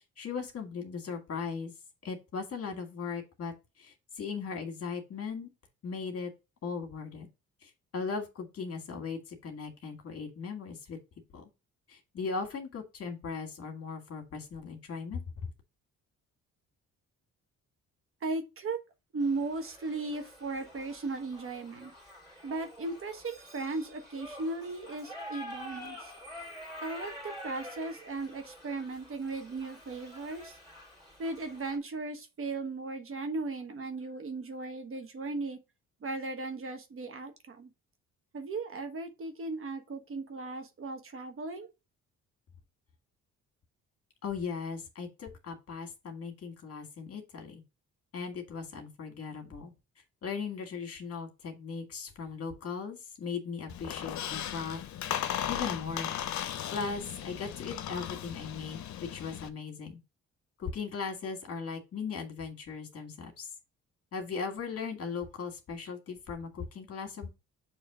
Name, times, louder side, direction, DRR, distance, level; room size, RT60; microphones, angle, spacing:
voice 1, 0.2-1.7 2.0-5.5 5.8-6.3 6.6-7.3 7.6-11.0 11.3-11.5 11.9-15.2 44.2-47.6 48.1-49.7 50.2-54.9 55.5-56.1 56.7-58.8 59.1-60.0 60.6-63.5 64.1-67.3, left 5 dB, 50° left, 1.8 m, -38 dB
voice 2, 18.2-18.8 19.1-21.9 22.4-26.1 26.8-30.6 31.2-35.6 36.0-37.7 38.3-41.7, right 3 dB, 45° right, 1.2 m, -37 dB
Shout / Livestock farm animals working animals, 19.2-31.8, equal, 15° right, 2.3 m, -47 dB
Squeak, 53.7-59.5, left 10 dB, 70° left, 0.7 m, -36 dB
6.4 x 3.1 x 4.8 m
cardioid pair, 90°, 30 cm